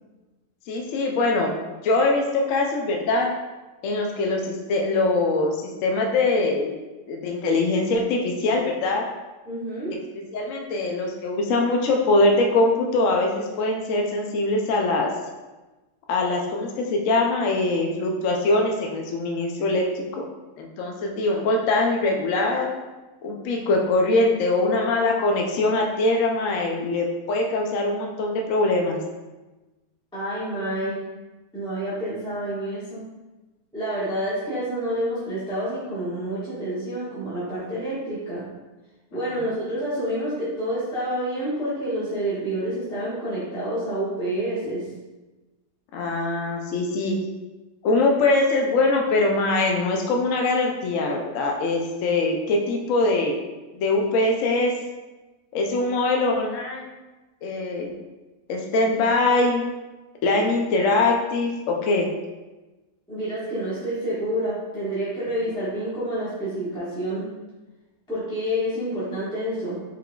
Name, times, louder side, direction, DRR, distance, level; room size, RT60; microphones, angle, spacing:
voice 1, 0.7-1.5 1.8-3.3 3.8-6.7 7.1-9.1 9.9-10.0 10.3-15.1 16.1-20.2 20.6-22.7 23.2-29.0 45.9-47.2 47.8-53.4 53.7-54.7 55.5-56.9 57.4-57.9 58.5-59.6 60.2-62.1, left 2 dB, 70° left, 1 dB, 0.8 m, -22 dB
voice 2, 9.4-10.0 30.1-31.0 31.5-33.0 33.7-38.4 39.1-44.9 63.1-67.3 68.1-69.7, right 1 dB, 5° left, -10 dB, 1.1 m, -28 dB
4.6 x 3.8 x 2.3 m, 1.1 s
omnidirectional pair, 1.8 m